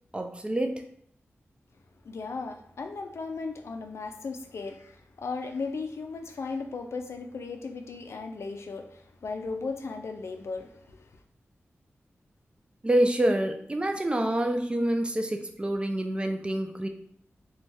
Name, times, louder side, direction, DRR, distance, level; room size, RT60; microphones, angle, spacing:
voice 1, 0.1-0.8 12.8-16.9, right 1 dB, 20° right, 5 dB, 0.4 m, -27 dB
voice 2, 2.0-11.1, left 4 dB, 70° left, 5 dB, 0.3 m, -36 dB
3.2 x 2.2 x 2.5 m, 0.67 s
wide cardioid pair, 70°, 5 cm